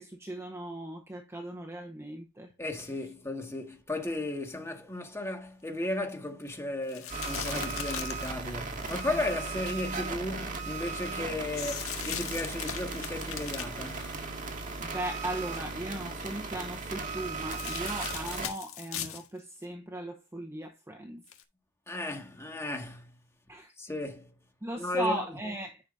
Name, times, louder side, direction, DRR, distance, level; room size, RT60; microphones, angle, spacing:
voice 1, 0.0-2.5 9.1-9.2 14.8-21.2 23.5-23.7 24.6-25.8, right 1 dB, 10° right, 0.8 m, -37 dB
voice 2, 2.6-14.1 21.9-23.1 23.8-24.3 24.8-25.2, left 2 dB, 10° left, 1.8 m, -35 dB
sound 1, 6.9-10.1 11.5-14.8 15.2-15.6 17.5-19.3 19.6-19.7 21.3-21.4, left 9 dB, 80° left, 1.6 m, -39 dB
sound 2, 7.1-18.5, right 3 dB, 35° right, 2.0 m, -37 dB
10.5 x 6.1 x 2.6 m
head